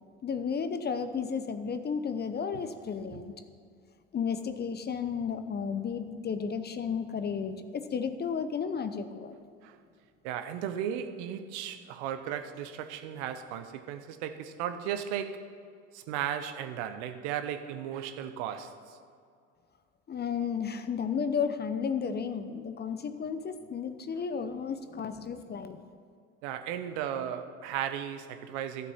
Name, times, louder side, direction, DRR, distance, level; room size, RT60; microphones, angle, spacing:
voice 1, 0.2-3.3 4.1-9.4 20.1-25.8, left 6 dB, 25° left, 0.8 m, -33 dB
voice 2, 10.2-15.5 15.9-19.0 26.4-28.9, right 9 dB, 65° right, 1.0 m, -36 dB
13.5 x 7.3 x 5.7 m
hypercardioid pair, 80°, 37 cm